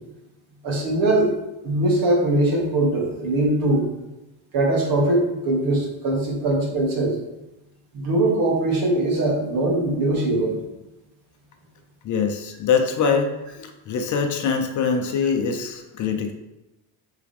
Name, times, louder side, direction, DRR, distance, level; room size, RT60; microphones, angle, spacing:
voice 1, 0.6-1.3 1.6-3.8 4.5-7.2 7.9-10.6, right 1 dB, 50° right, -1 dB, 2.2 m, -21 dB
voice 2, 12.0-16.3, left 5 dB, 40° left, 4 dB, 0.8 m, -23 dB
9.8 x 3.8 x 3.6 m, 0.95 s
cardioid pair, 145°, 44 cm